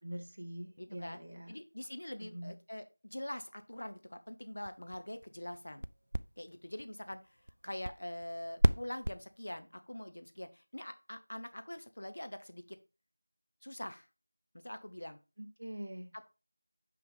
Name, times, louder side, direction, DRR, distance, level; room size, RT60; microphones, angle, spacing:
voice 1, 0.0-1.5 2.2-2.5 15.4-16.1, right 1 dB, 30° right, 3 dB, 1.0 m, -44 dB
voice 2, 0.8-1.2 1.5-5.8 6.4-7.4 7.6-12.8 13.6-14.1 14.5-15.2 16.1-16.3, left 1 dB, 50° left, 9 dB, 0.8 m, -44 dB
sound 1, 4.4-9.6, right 1 dB, 70° right, 0.3 m, -36 dB
5.7 x 5.3 x 3.6 m, 0.29 s
figure-of-eight pair, 180°, 0 cm